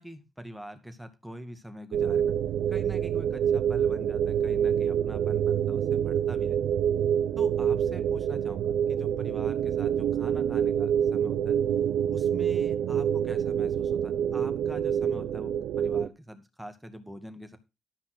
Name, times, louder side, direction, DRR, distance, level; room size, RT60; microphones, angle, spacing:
voice 1, 0.0-2.3 2.7-6.6 7.4-11.6 12.1-15.5 15.8-17.6, equal, 5° right, 8 dB, 2.2 m, -44 dB
sound 1, 1.9-16.1, right 9 dB, 85° right, 0.9 m, -26 dB
12.5 x 5.6 x 6.2 m, 0.27 s
cardioid pair, 90°, 0 cm